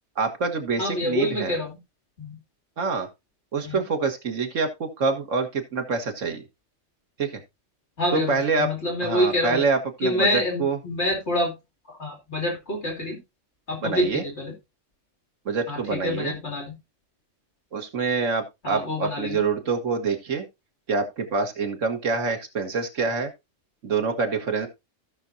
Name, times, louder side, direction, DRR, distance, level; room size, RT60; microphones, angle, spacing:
voice 1, 0.2-1.5 2.8-3.1 3.5-6.4 7.2-7.4 8.1-8.7 9.0-10.8 13.8-14.2 15.5-16.3 17.7-20.5 20.9-23.3 23.8-24.7, right 4 dB, 85° right, 5 dB, 1.8 m, -26 dB
voice 2, 0.8-1.8 2.2-2.4 3.6-3.8 8.0-9.6 10.0-11.5 11.9-13.2 13.7-14.5 15.7-16.7 18.6-19.5, left 1 dB, 60° left, 2 dB, 2.8 m, -27 dB
16.0 x 5.9 x 2.7 m, 0.22 s
omnidirectional pair, 1.3 m